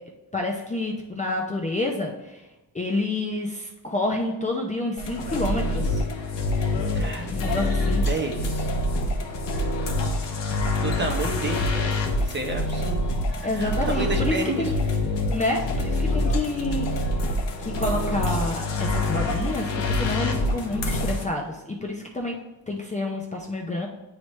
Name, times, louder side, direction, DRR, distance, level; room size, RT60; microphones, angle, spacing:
voice 1, 0.3-2.5 2.7-6.0 7.3-8.1 13.4-14.7 15.3-16.9 17.2-17.3 17.6-22.4 22.7-23.9, left 2 dB, 20° left, 0 dB, 0.5 m, -28 dB
sound 1, 5.0-21.2, left 1 dB, 90° left, 1.0 m, -26 dB
voice 2, 6.9-7.6 8.0-8.7 10.8-12.0 12.2-13.0 13.4-14.7, right 3 dB, 25° right, 2 dB, 0.8 m, -30 dB
9.4 x 3.2 x 3.1 m, 1.1 s
wide cardioid pair, 145°, 41 cm